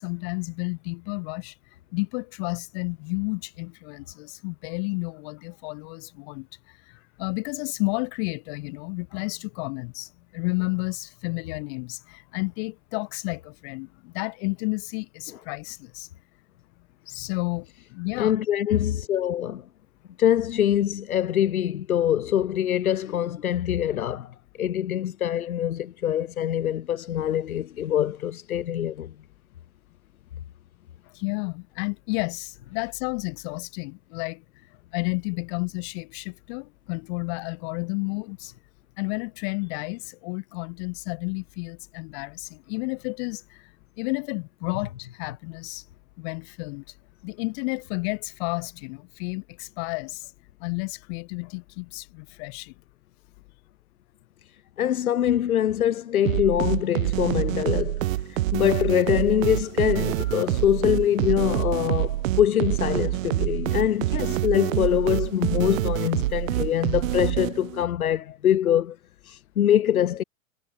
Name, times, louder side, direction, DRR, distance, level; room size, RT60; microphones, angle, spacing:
voice 1, 0.0-1.5 1.9-6.5 6.9-16.1 17.1-18.3 31.1-34.4 34.9-38.5 39.0-43.7 44.0-45.8 46.2-46.8 47.2-50.3 50.6-52.7 60.3-60.4, left 33 dB, 45° left, 4.0 m, -31 dB
voice 2, 18.2-19.6 20.2-29.1 54.8-69.0 69.2-70.2, left 11 dB, 80° left, 2.9 m, -24 dB
sound 1, 56.2-67.8, right 16 dB, 65° right, 1.0 m, -26 dB
hypercardioid pair, 125°, 42 cm